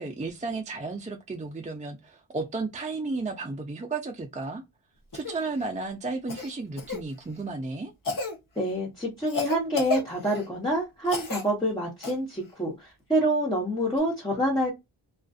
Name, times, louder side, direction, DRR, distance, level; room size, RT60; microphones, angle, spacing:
voice 1, 0.0-4.6 5.1-7.9, right 3 dB, 15° right, 0.4 m, -33 dB
Cough, 5.1-5.4 6.3-7.0 8.0-8.4 9.3-10.5 11.1-11.5 12.0-12.1 14.0-14.1, left 3 dB, 45° left, 0.8 m, -32 dB
voice 2, 8.6-14.7, right 1 dB, 10° left, 1.0 m, -27 dB
2.5 x 2.4 x 2.3 m
wide cardioid pair, 75°, 46 cm